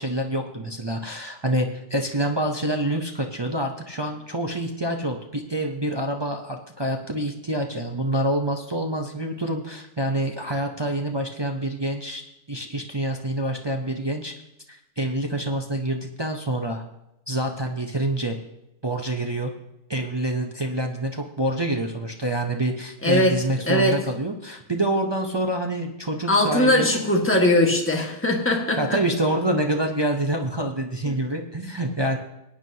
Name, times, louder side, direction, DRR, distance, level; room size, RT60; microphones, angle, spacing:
voice 1, 0.0-12.2 12.5-14.3 15.0-16.8 17.3-18.4 18.8-19.5 19.9-27.1 28.8-32.2, right 1 dB, 40° right, 2 dB, 0.3 m, -26 dB
voice 2, 23.0-23.4 23.7-24.0 26.3-29.0 31.1-31.2, left 1 dB, 10° left, 0 dB, 1.5 m, -20 dB
19.0 x 9.3 x 2.8 m, 0.87 s
omnidirectional pair, 1.8 m